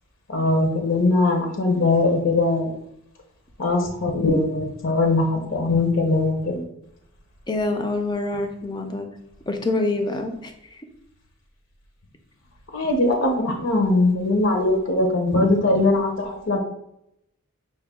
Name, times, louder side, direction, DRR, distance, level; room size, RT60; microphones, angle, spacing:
voice 1, 0.3-2.7 3.6-6.7 12.7-16.6, left 2 dB, 70° left, 2 dB, 0.7 m, -21 dB
voice 2, 7.5-9.1 9.5-10.8, left 2 dB, 20° left, 5 dB, 0.4 m, -26 dB
5.4 x 2.2 x 3.5 m, 0.78 s
head